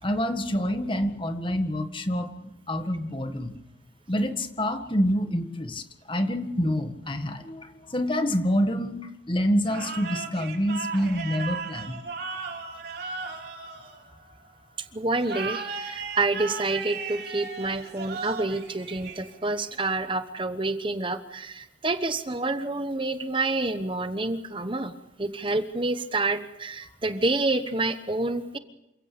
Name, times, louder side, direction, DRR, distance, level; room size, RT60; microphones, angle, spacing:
voice 1, 0.0-3.5 4.1-12.0, equal, 30° left, 7 dB, 1.6 m, -27 dB
sound 1, 9.6-14.5 15.2-19.6, right 4 dB, 60° right, 4.9 m, -36 dB
voice 2, 14.8-28.6, right 2 dB, 30° right, 10 dB, 1.1 m, -28 dB
28.0 x 16.5 x 6.8 m, 0.91 s
head